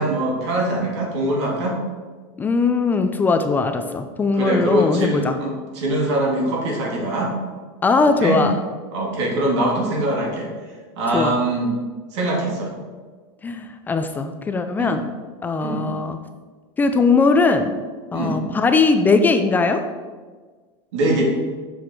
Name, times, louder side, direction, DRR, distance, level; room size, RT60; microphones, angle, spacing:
voice 1, 0.0-1.8 4.3-7.3 8.2-8.4 8.9-10.5 11.0-11.7 12.1-12.7 14.8-14.9 15.6-15.8 18.1-18.4 20.9-21.2, right 1 dB, 80° right, -1 dB, 2.7 m, -22 dB
voice 2, 2.4-5.4 7.8-8.6 11.1-11.4 13.4-15.0 15.4-16.2 16.8-17.7 18.1-19.9, left 4 dB, 15° left, 7 dB, 0.3 m, -19 dB
7.3 x 6.4 x 4.5 m, 1.4 s
supercardioid pair, 160°, 14 cm